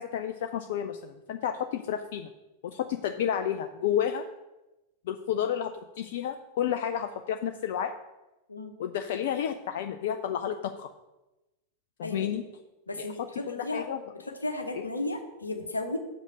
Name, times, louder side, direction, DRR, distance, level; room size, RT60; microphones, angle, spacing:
voice 1, 0.0-2.3 2.6-4.2 5.1-7.9 8.8-10.9 12.0-12.4 13.0-13.1 13.5-14.0 14.7-14.8, left 9 dB, 55° left, 6 dB, 0.4 m, -31 dB
voice 2, 12.9-13.9 14.3-16.0, left 2 dB, 80° left, 5 dB, 1.0 m, -34 dB
6.3 x 5.1 x 6.7 m, 1.0 s
figure-of-eight pair, 90°, 0 cm